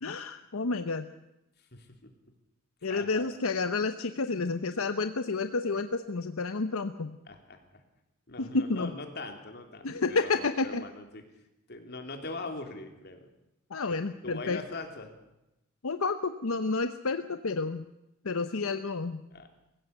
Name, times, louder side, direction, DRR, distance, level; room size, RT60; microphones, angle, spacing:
voice 1, 0.0-1.1 2.8-7.1 8.4-8.9 9.8-10.8 13.7-14.6 15.8-17.8 18.2-19.2, left 3 dB, 80° left, 9 dB, 0.9 m, -30 dB
voice 2, 1.7-2.1 2.9-3.2 7.3-7.6 8.3-11.2 11.7-13.3 13.8-14.0 14.2-15.1 19.3-19.5, left 3 dB, 50° left, 4 dB, 3.2 m, -41 dB
22.5 x 16.0 x 8.1 m, 0.92 s
head